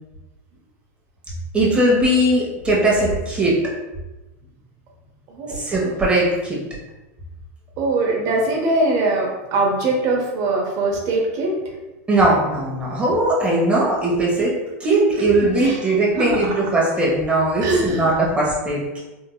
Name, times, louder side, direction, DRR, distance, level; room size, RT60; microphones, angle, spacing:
voice 1, 1.5-3.6 5.5-6.6 12.1-14.5 14.8-19.0, right 1 dB, 15° right, -5 dB, 1.3 m, -19 dB
voice 2, 5.3-5.9 7.8-11.5 15.4-15.8 16.1-16.8 17.6-18.1, right 2 dB, 45° right, -2 dB, 0.8 m, -22 dB
3.9 x 2.7 x 2.3 m, 1.0 s
supercardioid pair, 120°, 8 cm